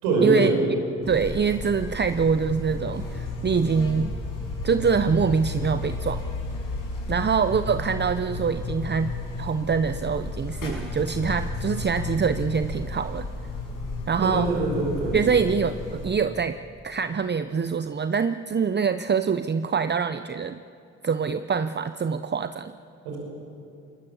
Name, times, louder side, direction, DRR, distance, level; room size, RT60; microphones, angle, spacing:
voice 1, 0.0-0.6 14.2-15.2 23.1-23.2, right 2 dB, 90° right, -1 dB, 5.3 m, -23 dB
Buzz, 1.0-16.0, left 3 dB, 75° left, 7.2 m, -33 dB
voice 2, 1.1-4.2 4.6-6.2 7.1-13.3 14.1-14.5 15.1-16.6 16.8-20.6 21.0-22.7, right 6 dB, 35° right, 11 dB, 0.8 m, -24 dB
24.5 x 21.0 x 7.1 m, 2.6 s
hypercardioid pair, 40°, 32 cm